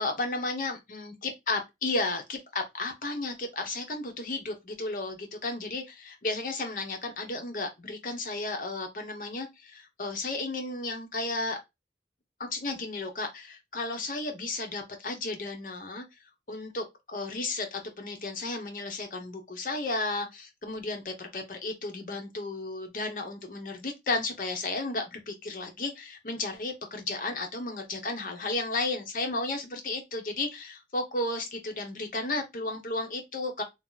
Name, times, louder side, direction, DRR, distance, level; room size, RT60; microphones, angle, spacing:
voice 1, 0.0-11.6 12.4-16.0 16.5-33.6, left 2 dB, 50° left, 0.7 m, -33 dB
2.8 x 2.3 x 3.8 m
head